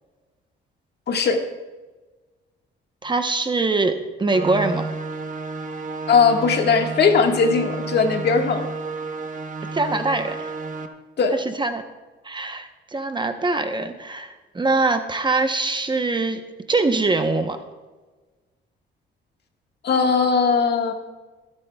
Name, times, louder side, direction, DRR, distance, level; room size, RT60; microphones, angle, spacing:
voice 1, 1.1-1.4 6.1-8.6 11.2-11.3 19.8-20.9, left 5 dB, 55° left, 3 dB, 1.6 m, -19 dB
voice 2, 3.0-4.9 9.7-10.5 11.6-11.8 12.2-16.4 16.7-17.6, right 3 dB, 25° right, 7 dB, 0.8 m, -23 dB
sound 1, 4.3-10.9, right 3 dB, 40° right, 1.1 m, -31 dB
23.0 x 9.8 x 2.3 m, 1.2 s
cardioid pair, 90°, 20 cm